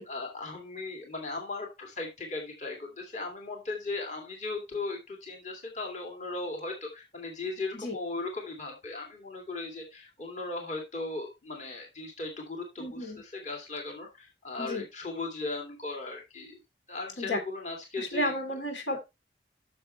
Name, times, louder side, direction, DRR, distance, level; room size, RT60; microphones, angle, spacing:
voice 1, 0.0-16.6 16.9-18.3, left 3 dB, 40° left, 1 dB, 2.1 m, -37 dB
voice 2, 12.8-13.2 14.6-14.8 17.2-17.4 18.0-19.0, left 1 dB, 80° left, 4 dB, 2.9 m, -32 dB
10.0 x 6.6 x 3.0 m, 0.23 s
head